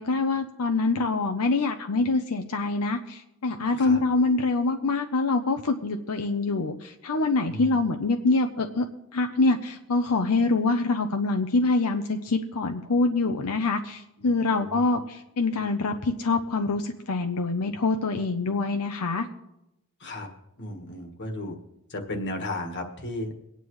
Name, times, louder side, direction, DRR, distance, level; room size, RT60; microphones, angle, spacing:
voice 1, 0.0-8.8 9.1-19.3, left 3 dB, 85° left, 5 dB, 0.7 m, -25 dB
voice 2, 7.5-7.8 14.2-14.8 20.0-20.3 20.6-21.6 21.9-23.3, left 1 dB, 50° left, 4 dB, 1.5 m, -35 dB
23.0 x 9.2 x 3.2 m, 0.88 s
head